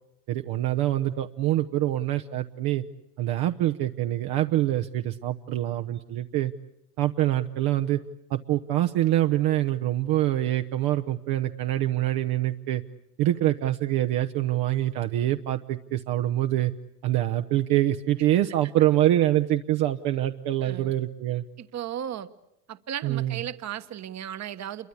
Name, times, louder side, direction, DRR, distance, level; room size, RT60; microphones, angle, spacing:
voice 1, 0.3-2.8 3.2-6.5 7.0-8.0 8.3-12.8 13.2-16.7 17.0-21.4 23.0-23.4, right 14 dB, 50° right, 6 dB, 1.1 m, -25 dB
voice 2, 20.6-20.9 21.6-22.3 22.7-24.9, right 10 dB, 35° right, 11 dB, 1.4 m, -35 dB
28.5 x 23.5 x 8.5 m, 0.82 s
hypercardioid pair, 80°, 45 cm